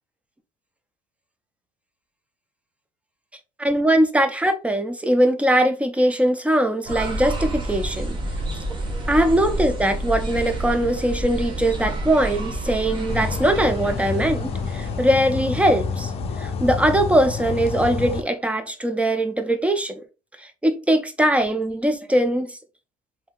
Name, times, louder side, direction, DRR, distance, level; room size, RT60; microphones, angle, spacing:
voice 1, 3.6-8.2 9.1-16.1 16.4-20.0 20.4-22.6, right 1 dB, 10° right, 0.4 m, -21 dB
sound 1, 6.9-15.2, right 1 dB, 30° right, 1.0 m, -29 dB
sound 2, 13.1-18.2, left 5 dB, 40° left, 0.5 m, -28 dB
3.4 x 2.7 x 2.3 m
cardioid pair, 105°, 15 cm